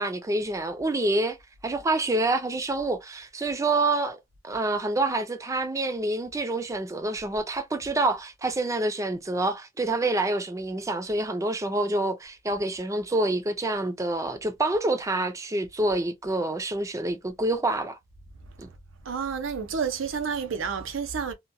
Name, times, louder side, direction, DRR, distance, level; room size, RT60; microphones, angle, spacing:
voice 1, 0.0-1.4 1.6-4.2 4.4-18.0 18.6-18.7, right 2 dB, 15° right, 0.4 m, -27 dB
voice 2, 19.0-21.3, right 6 dB, 85° right, 0.6 m, -30 dB
2.8 x 2.2 x 2.6 m
head